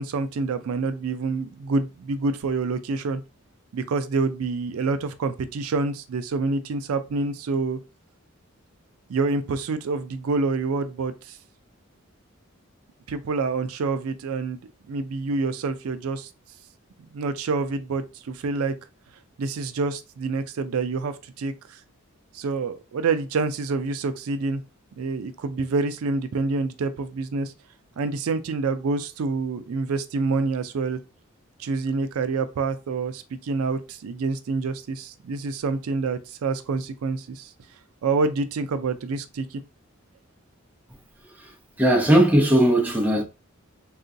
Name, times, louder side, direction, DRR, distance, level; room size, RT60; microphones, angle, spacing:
voice 1, 0.0-3.2 3.7-7.8 9.1-11.4 13.1-14.6 14.9-16.3 17.1-18.7 19.4-21.8 22.3-24.6 25.0-27.5 28.0-31.0 31.6-37.5 38.0-39.6, right 4 dB, 85° right, 0.4 m, -27 dB
voice 2, 41.8-43.2, right 1 dB, 10° right, 0.6 m, -18 dB
3.7 x 2.4 x 2.6 m
head